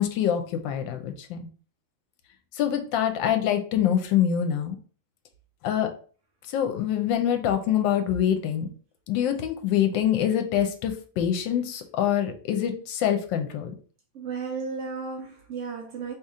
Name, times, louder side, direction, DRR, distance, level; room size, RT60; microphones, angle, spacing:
voice 1, 0.0-1.5 2.5-4.8 5.6-5.9 6.5-8.7 9.1-13.7, left 10 dB, 85° left, 1.3 m, -25 dB
voice 2, 14.1-16.1, right 5 dB, 80° right, 0.6 m, -34 dB
3.2 x 2.9 x 3.6 m
omnidirectional pair, 2.0 m